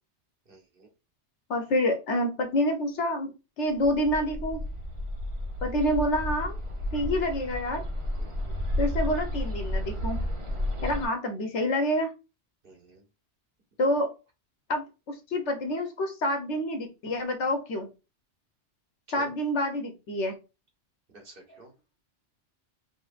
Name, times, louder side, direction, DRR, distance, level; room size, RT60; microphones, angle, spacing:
voice 1, 0.4-0.9 8.2-8.6 10.5-10.9 12.6-13.0 19.1-19.3 21.1-21.7, right 2 dB, 50° right, 2 dB, 1.5 m, -51 dB
voice 2, 1.5-4.6 5.6-6.6 6.9-7.8 8.8-10.2 10.8-12.1 13.8-14.1 14.7-17.9 19.1-20.4, left 1 dB, 80° left, 5 dB, 1.4 m, -27 dB
Bird, 3.8-11.1, left 1 dB, 30° right, 0.9 m, -32 dB
5.4 x 2.9 x 2.5 m, 0.29 s
omnidirectional pair, 1.2 m